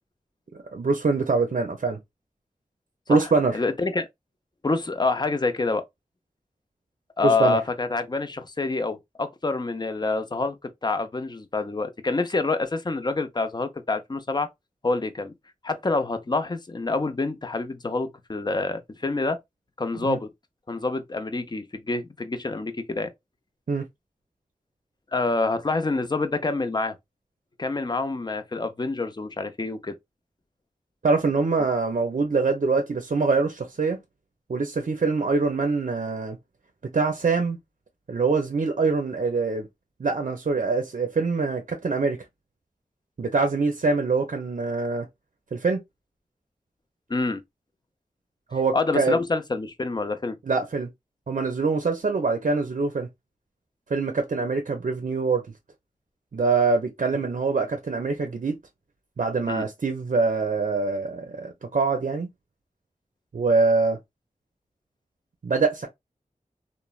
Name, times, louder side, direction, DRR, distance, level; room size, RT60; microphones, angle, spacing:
voice 1, 0.7-2.0 3.1-3.6 7.2-7.6 20.0-20.2 23.7-23.8 31.0-34.0 34.5-36.4 36.9-37.6 38.1-39.7 40.0-42.2 43.2-45.1 45.5-45.8 48.5-49.2 50.5-50.9 51.3-53.1 53.9-55.4 56.3-58.6 59.2-62.3 63.3-64.0 65.4-65.9, right 4 dB, 60° right, 0.5 m, -24 dB
voice 2, 3.5-4.1 4.6-5.8 7.2-14.5 14.8-15.3 15.6-19.4 19.8-20.3 20.7-23.1 25.1-26.9 27.6-29.9 47.1-47.4 48.7-50.4 59.5-59.7, left 3 dB, 30° left, 0.5 m, -27 dB
3.1 x 2.1 x 2.3 m
wide cardioid pair, 50°, 15 cm